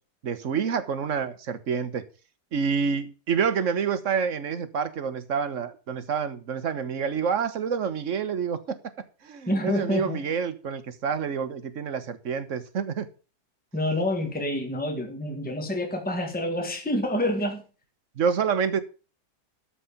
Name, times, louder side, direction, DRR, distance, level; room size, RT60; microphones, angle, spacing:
voice 1, 0.2-2.0 2.5-8.8 9.2-13.1 18.2-18.8, right 6 dB, 50° right, 1.4 m, -28 dB
voice 2, 9.5-10.2 13.7-17.7, left 1 dB, 5° left, 1.9 m, -27 dB
13.5 x 5.0 x 7.2 m
omnidirectional pair, 1.7 m